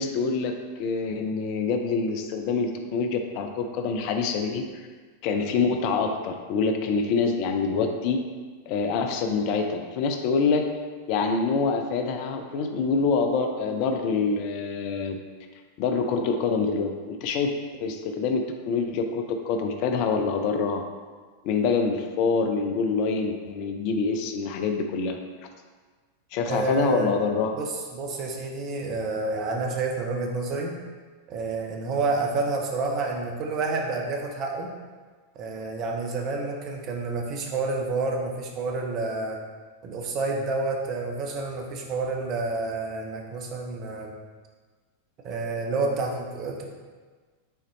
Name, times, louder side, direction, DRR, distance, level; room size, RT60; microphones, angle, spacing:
voice 1, 0.0-4.9 5.2-8.2 8.7-10.7 11.1-15.2 15.8-17.5 17.8-20.8 21.4-25.2 26.3-27.5, left 4 dB, 45° left, 5 dB, 0.5 m, -26 dB
voice 2, 26.5-27.1 27.6-30.7 31.3-34.7 35.3-39.4 39.8-44.1 45.2-46.6, right 3 dB, 35° right, 1 dB, 0.9 m, -29 dB
5.8 x 4.1 x 4.1 m, 1.4 s
figure-of-eight pair, 90°, 0 cm